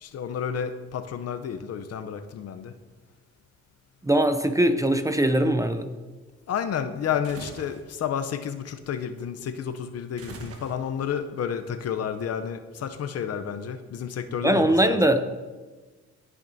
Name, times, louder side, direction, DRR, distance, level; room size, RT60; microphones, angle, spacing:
voice 1, 0.0-2.7 6.5-15.0, left 8 dB, 55° left, 9 dB, 0.6 m, -31 dB
voice 2, 4.0-5.9 14.4-15.3, right 1 dB, 10° right, 9 dB, 0.5 m, -21 dB
sound 1, 7.2-7.9 10.2-11.1, right 4 dB, 50° right, 1.2 m, -42 dB
15.5 x 6.0 x 2.7 m, 1.3 s
cardioid pair, 90°, 30 cm